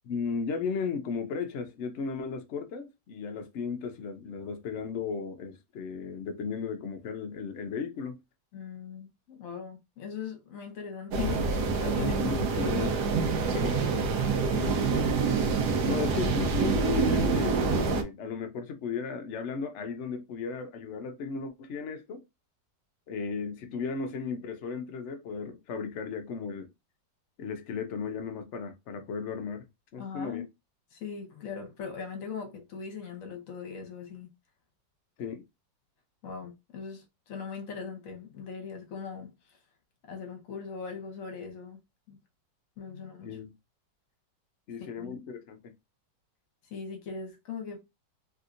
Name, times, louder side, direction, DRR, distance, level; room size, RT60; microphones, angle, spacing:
voice 1, 0.0-8.2 12.0-13.9 15.8-22.2 23.1-26.7 27.4-29.7 29.9-30.4 35.2-35.4 42.9-43.5 44.7-45.7, left 5 dB, 90° left, 0.6 m, -35 dB
voice 2, 8.5-12.1 12.5-12.7 14.5-14.9 30.0-30.4 30.9-34.3 36.2-39.3 40.0-41.8 42.1-42.2 42.8-43.3 45.0-45.2 46.7-47.8, left 6 dB, 55° left, 1.2 m, -40 dB
sound 1, 11.1-18.0, right 4 dB, 70° right, 1.2 m, -26 dB
3.4 x 2.7 x 2.4 m
omnidirectional pair, 2.0 m